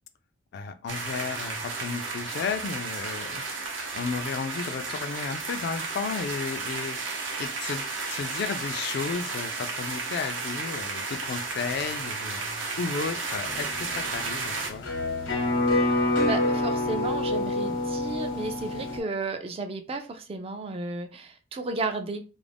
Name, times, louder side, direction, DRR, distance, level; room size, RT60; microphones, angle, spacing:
voice 1, 0.5-3.4 3.9-7.0 7.4-12.4 12.8-13.7 14.0-14.9, left 5 dB, 55° left, 9 dB, 0.3 m, -33 dB
sound 1, 0.9-14.7, right 3 dB, 80° right, 0.7 m, -33 dB
sound 2, 13.4-19.0, left 2 dB, 80° left, 0.9 m, -27 dB
voice 2, 16.2-22.2, right 3 dB, 30° right, 7 dB, 0.3 m, -33 dB
2.5 x 2.0 x 3.3 m, 0.34 s
head